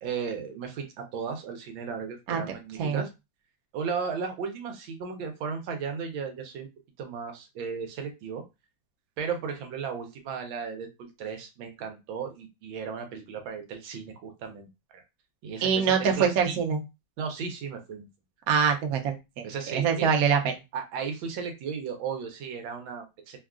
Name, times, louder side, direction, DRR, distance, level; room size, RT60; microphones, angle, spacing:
voice 1, 0.0-3.1 3.7-6.7 7.0-8.4 9.2-14.7 14.9-15.0 15.4-16.6 17.2-18.1 19.4-20.1 20.7-23.4, right 6 dB, 90° right, 4 dB, 1.5 m, -35 dB
voice 2, 15.6-16.8 18.5-19.5 19.7-20.5, right 6 dB, 65° right, 4 dB, 0.9 m, -24 dB
3.5 x 2.3 x 2.4 m, 0.24 s
omnidirectional pair, 2.1 m